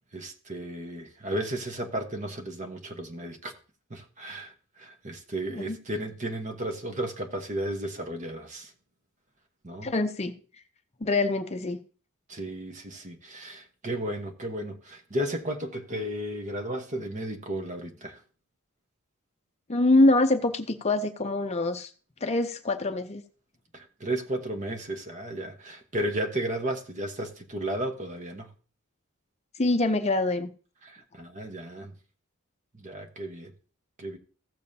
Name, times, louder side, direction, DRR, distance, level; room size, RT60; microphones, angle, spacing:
voice 1, 0.1-3.5 3.9-8.7 9.6-9.9 12.3-18.2 23.7-28.5 30.8-31.9 32.7-33.5 34.0-34.2, right 1 dB, 35° right, 1.1 m, -34 dB
voice 2, 9.8-10.4 11.0-11.8 19.7-21.9 22.2-23.2 29.6-30.5, left 2 dB, 30° left, 0.6 m, -24 dB
15.5 x 7.0 x 2.7 m
head